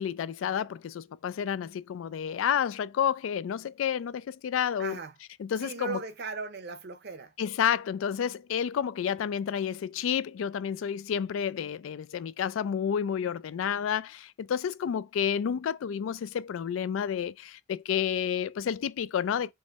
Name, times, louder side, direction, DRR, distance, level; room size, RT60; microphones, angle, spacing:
voice 1, 0.0-5.0 5.4-6.0 7.4-19.5, left 8 dB, 75° left, 0.3 m, -30 dB
voice 2, 4.8-5.1 5.6-7.3, right 4 dB, 55° right, 0.7 m, -37 dB
3.7 x 3.1 x 4.0 m
head